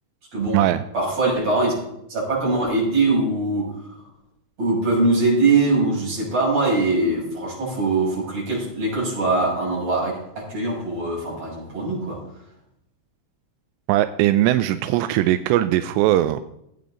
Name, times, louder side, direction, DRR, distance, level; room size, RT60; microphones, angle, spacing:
voice 1, 0.3-0.6 0.9-1.7 2.1-3.7 4.6-12.2, right 3 dB, 30° right, -5 dB, 7.3 m, -22 dB
voice 2, 13.9-16.4, right 14 dB, 85° right, 11 dB, 2.5 m, -19 dB
18.5 x 8.7 x 3.9 m, 0.79 s
omnidirectional pair, 5.4 m